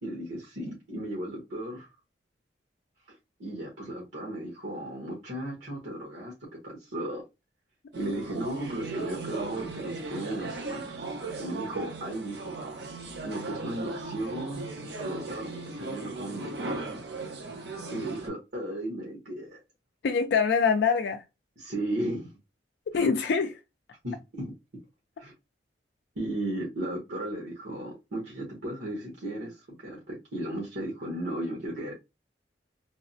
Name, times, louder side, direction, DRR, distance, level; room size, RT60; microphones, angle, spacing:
voice 1, 0.0-1.9 3.4-7.2 7.9-11.1 11.4-12.6 13.2-14.7 15.0-17.0 17.9-19.6 21.6-22.3 23.0-23.1 24.0-24.5 25.2-25.3 26.1-31.9, right 1 dB, 90° right, 1.1 m, -35 dB
sound 1, 7.9-18.3, right 3 dB, 65° right, 0.8 m, -37 dB
voice 2, 20.0-21.2 22.9-23.6, left 5 dB, 65° left, 0.4 m, -24 dB
3.2 x 2.0 x 2.6 m
head